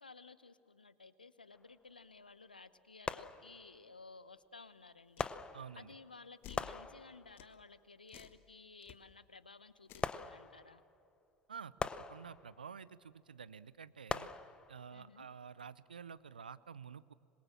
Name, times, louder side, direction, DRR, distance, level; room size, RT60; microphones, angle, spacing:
voice 1, 0.0-5.3 5.8-10.8 14.9-15.3, left 4 dB, 90° left, 16 dB, 0.8 m, -56 dB
sound 1, 1.5-1.7 3.1-3.9 5.2-6.1 6.6-7.5 10.0-10.9 11.8-12.8 14.1-15.0 15.6-15.7, left 4 dB, 20° left, 0.9 m, -42 dB
sound 2, 5.2-5.3 6.4-6.7 7.4-7.5 8.1-8.4 8.8-9.0 9.9-10.2, left 10 dB, 50° left, 1.3 m, -53 dB
voice 2, 5.5-5.9 11.5-14.3 14.7-17.1, right 6 dB, 85° right, 18 dB, 0.6 m, -50 dB
26.0 x 22.0 x 7.6 m, 2.7 s
figure-of-eight pair, 75°, 5 cm